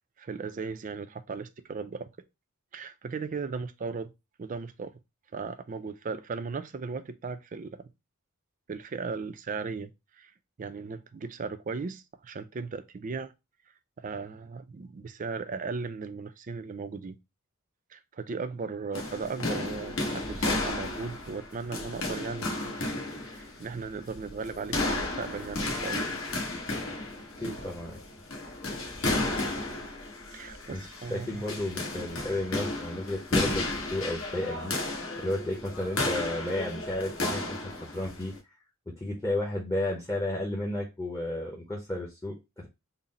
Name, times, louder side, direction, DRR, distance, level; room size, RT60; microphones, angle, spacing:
voice 1, 0.2-2.1 2.7-4.1 4.4-4.9 5.3-7.9 8.7-10.3 10.6-13.3 14.0-17.2 17.9-26.1 27.0-27.1 27.4-27.6 28.7-28.8 30.3-31.4, right 4 dB, 35° right, 0.3 m, -37 dB
sound 1, 18.9-38.4, left 2 dB, 65° left, 1.0 m, -33 dB
voice 2, 27.4-27.9 30.7-30.8 31.1-34.7 35.2-37.4 37.8-38.3 39.0-42.7, left 1 dB, 15° left, 0.7 m, -32 dB
3.8 x 2.0 x 4.0 m
head